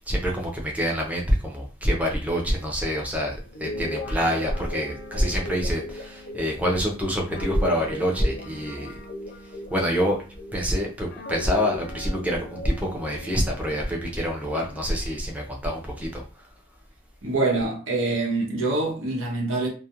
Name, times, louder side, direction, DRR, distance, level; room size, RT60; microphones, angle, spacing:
voice 1, 0.1-8.9 9.7-10.2 10.5-16.4, equal, 5° right, 0.5 m, -26 dB
Guitar, 3.5-10.7 11.1-14.8, left 1 dB, 50° left, 0.4 m, -38 dB
voice 2, 17.2-19.7, right 2 dB, 90° right, 0.9 m, -25 dB
2.3 x 2.1 x 2.8 m
head